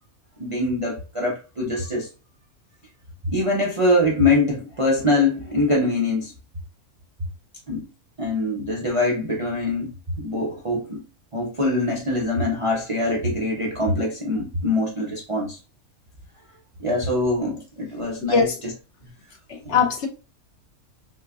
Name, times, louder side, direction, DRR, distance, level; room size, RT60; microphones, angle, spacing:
voice 1, 0.4-2.1 3.3-6.3 7.7-7.9 8.2-11.0 11.3-15.6 16.8-18.5 19.7-19.8, left 2 dB, 45° right, 0.4 m, -23 dB
voice 2, 18.2-18.6 19.5-20.1, left 5 dB, 60° left, 0.8 m, -21 dB
5.3 x 2.1 x 2.3 m
omnidirectional pair, 1.5 m